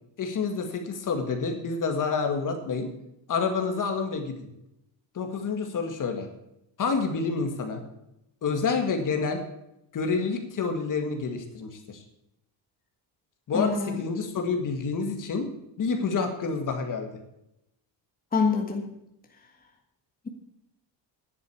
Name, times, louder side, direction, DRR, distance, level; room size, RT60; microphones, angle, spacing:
voice 1, 0.2-2.9 3.3-4.5 5.1-6.3 6.8-7.8 8.4-9.4 9.9-12.0 13.5-15.5 15.8-17.1, left 4 dB, 45° left, 5 dB, 1.9 m, -28 dB
voice 2, 13.5-14.0 18.3-18.9, left 5 dB, 20° left, 2 dB, 1.7 m, -25 dB
10.5 x 8.0 x 8.3 m, 0.84 s
cardioid pair, 170°, 45 cm